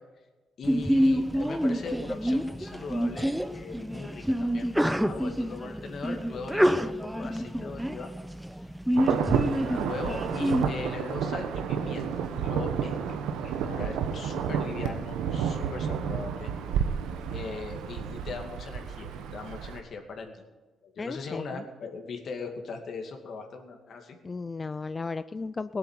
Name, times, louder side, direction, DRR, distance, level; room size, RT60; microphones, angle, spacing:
voice 1, 0.6-8.1 8.6-8.7 8.9-9.2 9.5-16.5 17.3-20.4 20.8-24.2, left 4 dB, 60° left, 4 dB, 2.3 m, -40 dB
Sneeze, 0.6-10.6, equal, 5° right, 0.7 m, -28 dB
Insect / Thunder / Rain, 9.0-19.8, right 7 dB, 90° right, 1.2 m, -31 dB
voice 2, 21.0-21.6 24.2-25.8, left 4 dB, 30° left, 14 dB, 0.4 m, -34 dB
17.5 x 7.9 x 7.5 m, 1.3 s
cardioid pair, 90°, 0 cm